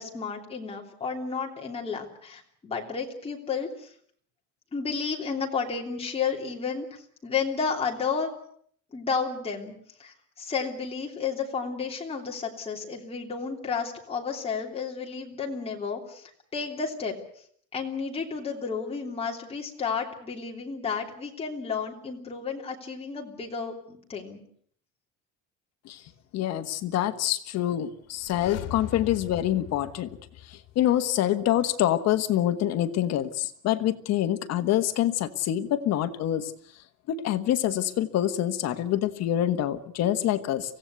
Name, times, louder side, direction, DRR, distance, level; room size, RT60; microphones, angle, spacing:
voice 1, 0.0-3.9 4.7-6.9 7.2-8.3 8.9-9.7 10.0-17.2 17.7-24.4, left 5 dB, 20° left, 0 dB, 3.2 m, -32 dB
voice 2, 26.3-30.1 30.5-36.5 37.1-40.8, left 12 dB, 50° left, 9 dB, 1.4 m, -26 dB
sound 1, 28.1-31.0 31.3-31.4, left 12 dB, 80° left, 1.8 m, -40 dB
24.5 x 16.5 x 8.2 m, 0.63 s
cardioid pair, 175°, 32 cm